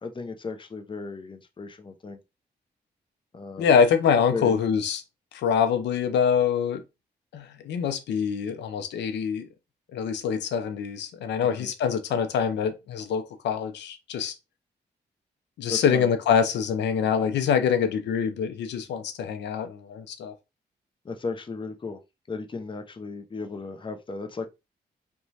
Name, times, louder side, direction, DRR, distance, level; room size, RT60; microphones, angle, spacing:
voice 1, 0.0-2.2 3.3-3.7 4.3-4.6 11.6-11.7 15.7-16.1 21.0-22.0 22.3-24.5, left 4 dB, 30° left, 0.5 m, -35 dB
voice 2, 3.6-5.0 5.3-6.8 7.3-9.5 9.9-14.3 15.6-20.3, left 7 dB, 85° left, 0.5 m, -25 dB
2.9 x 2.2 x 2.7 m
cardioid pair, 60°, 18 cm